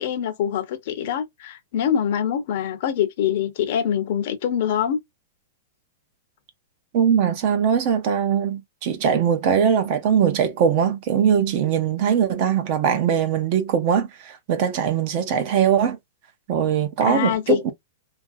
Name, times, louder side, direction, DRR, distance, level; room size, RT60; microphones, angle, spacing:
voice 1, 0.0-5.0 17.0-17.7, left 9 dB, 45° left, 0.6 m, -24 dB
voice 2, 6.9-16.0 16.5-17.7, right 8 dB, 35° right, 0.5 m, -21 dB
2.9 x 2.4 x 2.5 m
supercardioid pair, 170°, 0 cm